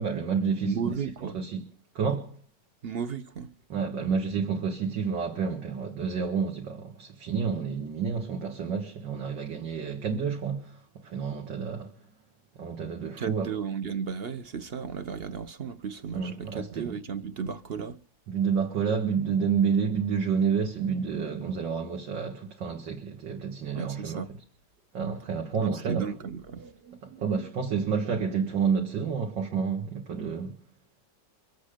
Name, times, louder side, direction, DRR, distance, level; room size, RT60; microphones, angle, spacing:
voice 1, 0.0-1.7 2.0-2.4 3.7-11.9 12.6-13.5 16.1-17.0 18.3-24.4 24.9-26.2 27.0-30.6, right 6 dB, 90° right, 2.3 m, -29 dB
voice 2, 0.6-1.3 2.8-3.5 13.2-18.0 23.7-24.3 25.6-27.3, right 6 dB, 55° right, 0.6 m, -34 dB
25.0 x 8.3 x 5.0 m
omnidirectional pair, 1.9 m